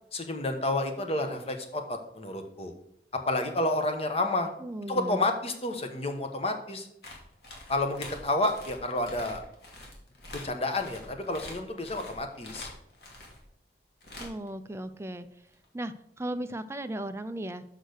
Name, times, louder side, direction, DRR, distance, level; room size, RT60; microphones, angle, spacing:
voice 1, 0.1-2.7 3.3-4.5 4.9-6.9 7.7-9.4 10.3-12.7, left 2 dB, 35° left, 6 dB, 1.2 m, -30 dB
voice 2, 4.6-5.2 14.2-15.3 15.7-17.6, right 1 dB, 15° right, 10 dB, 0.5 m, -36 dB
sound 1, 7.0-13.4 14.0-14.5 15.5-15.7, left 1 dB, 65° left, 2.4 m, -45 dB
6.7 x 6.3 x 6.4 m, 0.75 s
head